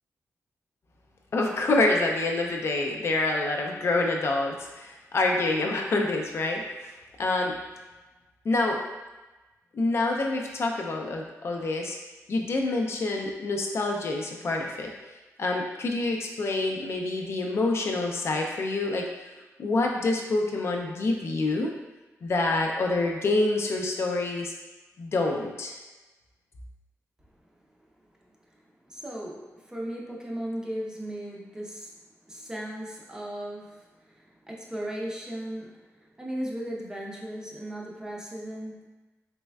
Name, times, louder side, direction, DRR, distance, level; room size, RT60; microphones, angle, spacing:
voice 1, 1.3-6.9 7.2-7.5 8.5-8.8 9.7-12.0 12.3-14.9 15.4-19.1 19.6-21.7 22.2-24.5 25.0-25.7, left 2 dB, 50° left, 1 dB, 0.3 m, -27 dB
voice 2, 28.9-32.0 32.3-38.9, right 1 dB, 10° right, -3 dB, 0.5 m, -37 dB
3.3 x 3.1 x 2.2 m, 1.1 s
wide cardioid pair, 130°, 6 cm